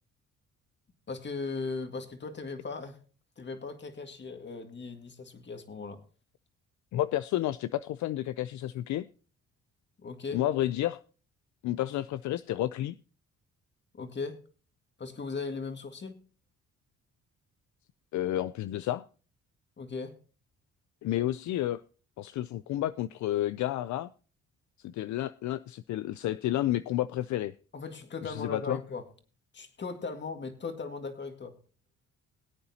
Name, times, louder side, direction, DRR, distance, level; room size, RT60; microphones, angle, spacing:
voice 1, 1.1-3.0 3.4-6.0 10.0-10.4 13.9-14.4 15.0-16.2 19.8-20.1 27.7-29.0 29.5-31.5, left 4 dB, 35° left, 7 dB, 1.9 m, -38 dB
voice 2, 6.9-9.1 10.3-11.0 11.6-13.0 18.1-19.0 21.0-21.8 22.2-24.1 24.8-27.5 28.2-28.8, left 13 dB, 70° left, 14 dB, 0.5 m, -31 dB
20.5 x 8.7 x 2.8 m, 0.37 s
cardioid pair, 90°, 30 cm